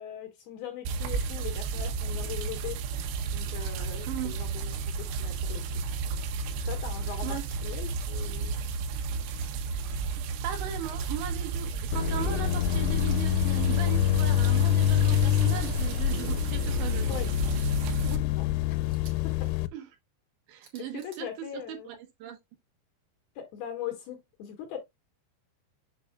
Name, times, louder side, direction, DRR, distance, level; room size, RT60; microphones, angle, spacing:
voice 1, 0.0-2.8 3.3-4.8 5.2-5.8 6.6-8.6 17.0-17.3 18.0-18.5 19.2-19.5 20.8-21.9 23.4-24.8, left 10 dB, 65° left, 2.8 m, -40 dB
sound 1, 0.9-18.2, right 4 dB, 90° right, 3.4 m, -32 dB
sound 2, 4.5-4.8 6.9-7.6 9.2-9.5 10.9-11.1 12.6-13.2 14.5-14.7 15.8-16.0 17.4-17.6 18.9-19.2 20.6-21.2, right 5 dB, 50° right, 2.8 m, -53 dB
voice 2, 10.4-17.2 19.7-19.9 20.5-21.3 21.5-22.4, right 10 dB, 75° right, 3.2 m, -38 dB
sound 3, 11.9-19.7, left 13 dB, 85° left, 3.1 m, -26 dB
7.4 x 6.8 x 2.3 m
omnidirectional pair, 5.6 m